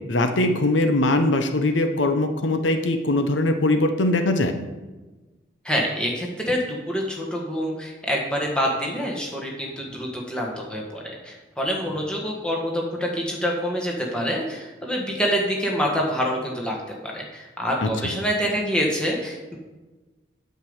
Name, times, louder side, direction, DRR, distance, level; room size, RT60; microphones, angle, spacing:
voice 1, 0.1-4.5 17.8-17.9, left 2 dB, 85° left, 7 dB, 0.9 m, -21 dB
voice 2, 5.6-16.8 17.0-19.6, equal, 5° left, -2 dB, 1.6 m, -26 dB
8.9 x 5.3 x 8.0 m, 1.2 s
head